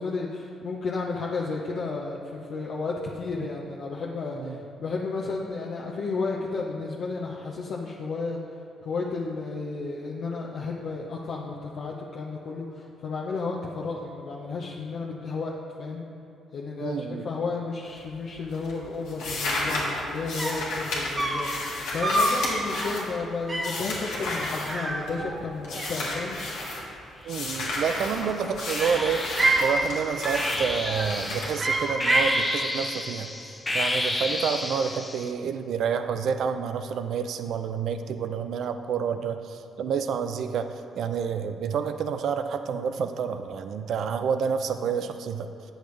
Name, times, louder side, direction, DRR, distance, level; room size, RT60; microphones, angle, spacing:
voice 1, 0.0-8.4 8.8-15.5 15.8-16.0 16.5-26.4, left 4 dB, 65° left, -4 dB, 0.7 m, -32 dB
voice 2, 16.8-17.2 27.2-33.3 33.7-40.7 41.0-45.5, right 6 dB, 70° right, 8 dB, 0.4 m, -29 dB
sound 1, 17.8-18.3 18.5-25.3 25.6-26.8 27.3-32.2, left 2 dB, 90° left, 1.5 m, -33 dB
sound 2, 20.1-20.2 20.4-20.7 21.2-21.5 22.0-22.4 22.7-23.0 23.5-23.8 24.6-25.5 25.7-26.5 27.7-28.3 28.8-29.7 30.2-30.5 30.8-31.2 31.6-32.4, right 2 dB, 30° right, 0.8 m, -27 dB
sound 3, 27.3-28.0 28.7-35.3, left 2 dB, 20° left, 0.7 m, -32 dB
8.4 x 6.5 x 3.2 m, 2.8 s
cardioid pair, 90°, 0 cm